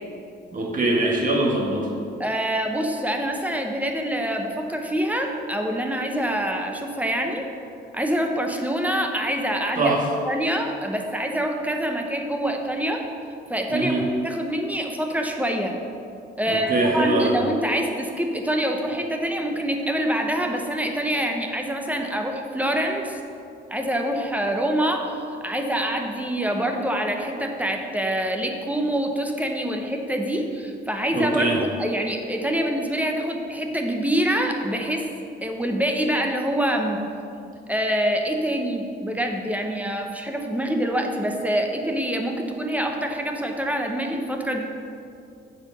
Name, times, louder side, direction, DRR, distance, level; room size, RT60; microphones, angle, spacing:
voice 1, 0.5-1.9 9.8-10.0 13.7-14.0 16.5-17.3 31.1-31.6, right 2 dB, 40° right, -2 dB, 1.5 m, -22 dB
voice 2, 1.0-1.4 2.2-7.4 7.9-9.9 10.2-13.0 13.5-15.7 16.4-23.2 23.7-25.1 25.4-35.1 35.4-37.0 37.7-44.6, right 1 dB, 5° right, 3 dB, 0.8 m, -25 dB
7.7 x 4.5 x 5.5 m, 2.6 s
cardioid pair, 90°, 20 cm